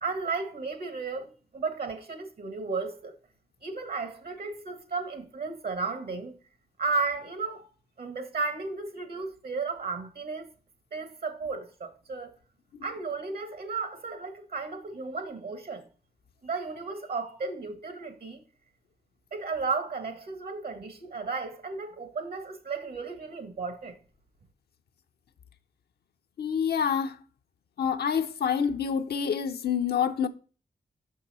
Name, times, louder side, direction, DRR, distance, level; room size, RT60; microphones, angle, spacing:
voice 1, 0.0-3.1 3.6-6.3 6.8-7.7 8.0-10.5 10.9-12.3 12.8-15.9 16.4-18.4 19.3-23.9, right 4 dB, 75° right, 1.6 m, -34 dB
voice 2, 26.4-27.2 27.8-30.3, left 7 dB, 80° left, 0.6 m, -27 dB
5.9 x 5.6 x 4.2 m
cardioid pair, 40°, 16 cm